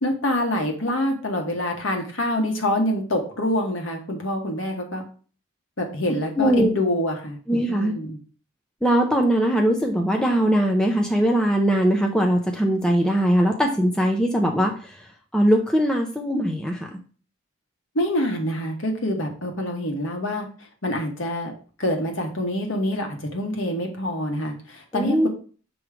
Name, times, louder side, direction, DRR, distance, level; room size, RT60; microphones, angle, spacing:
voice 1, 0.0-5.0 5.8-7.4 7.7-8.2 17.9-20.4 20.8-21.5 21.8-25.3, left 1 dB, 65° left, 2 dB, 1.4 m, -26 dB
voice 2, 6.4-6.7 7.5-7.9 8.8-14.7 15.3-16.9 24.9-25.3, equal, 5° left, 1 dB, 0.5 m, -20 dB
6.3 x 3.1 x 4.9 m, 0.40 s
head